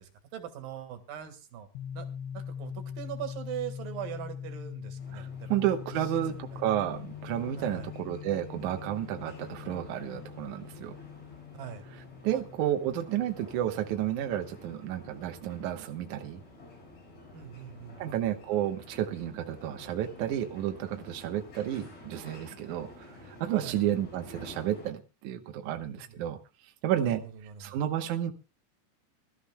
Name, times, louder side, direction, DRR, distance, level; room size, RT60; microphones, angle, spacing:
voice 1, 0.0-1.7 1.9-2.1 2.3-5.6 5.9-6.1 6.3-6.6 7.6-7.9 11.5-11.8 12.3-12.4 13.6-13.7 17.3-18.4 23.6-23.8 25.6-26.2 27.0-27.8, right 10 dB, 60° right, 7 dB, 3.0 m, -42 dB
sound 1, 1.8-15.4, left 8 dB, 80° left, 3.1 m, -43 dB
sound 2, 5.0-24.9, left 1 dB, 65° left, 7.2 m, -51 dB
voice 2, 5.1-10.9 12.2-16.4 18.0-26.4 26.8-27.2 27.6-28.3, right 11 dB, 85° right, 5 dB, 1.7 m, -31 dB
25.0 x 13.0 x 2.2 m, 0.29 s
omnidirectional pair, 5.1 m